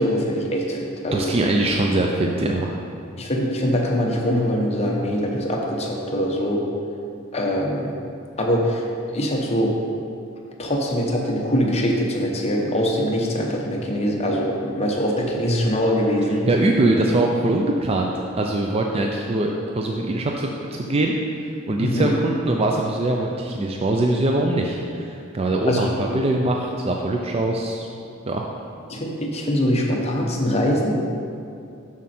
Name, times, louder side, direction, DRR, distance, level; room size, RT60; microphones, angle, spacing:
voice 1, 0.0-1.3 3.2-6.6 7.3-7.9 8.4-9.7 10.6-16.5 21.8-22.1 25.7-25.9 28.9-30.9, equal, 30° left, -1 dB, 0.9 m, -23 dB
voice 2, 1.1-2.7 16.5-18.1 18.4-21.1 21.4-27.9 28.3-28.4, right 2 dB, 30° right, 1 dB, 0.4 m, -22 dB
7.1 x 6.4 x 4.3 m, 2.5 s
head